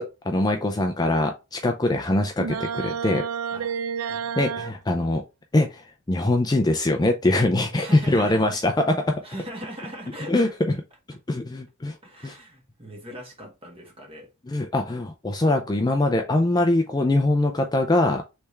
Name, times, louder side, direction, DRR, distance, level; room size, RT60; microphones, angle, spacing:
voice 1, 0.0-3.2 4.4-5.2 5.5-9.2 10.3-10.7 11.3-12.0 12.2-12.3 14.5-18.2, left 2 dB, 20° left, 0.4 m, -23 dB
sound 1, 2.4-4.7, right 7 dB, 70° right, 0.4 m, -30 dB
voice 2, 7.7-8.7 9.2-10.5 12.0-14.3, right 1 dB, 25° right, 1.6 m, -39 dB
3.4 x 3.3 x 4.2 m
head